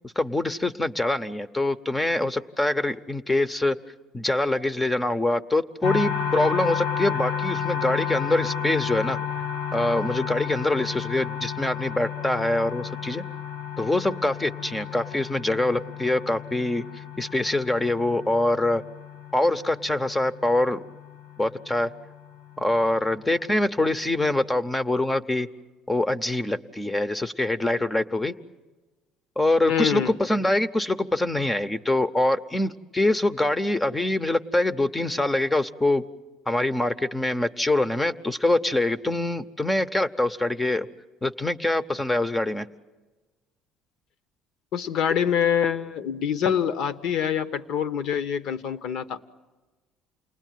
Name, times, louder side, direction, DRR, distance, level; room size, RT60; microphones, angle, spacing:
voice 1, 0.2-3.8 4.1-9.2 9.7-13.2 13.8-18.8 19.3-20.8 21.4-21.9 22.6-25.5 25.9-28.3 29.4-36.0 36.5-40.9 41.2-42.7, left 2 dB, 15° left, 13 dB, 0.7 m, -24 dB
sound 1, 5.8-23.5, left 8 dB, 85° left, 2.7 m, -32 dB
voice 2, 29.7-30.1 44.7-49.2, left 8 dB, 65° left, 13 dB, 1.1 m, -25 dB
28.5 x 20.0 x 9.3 m, 1.2 s
cardioid pair, 110°, 0 cm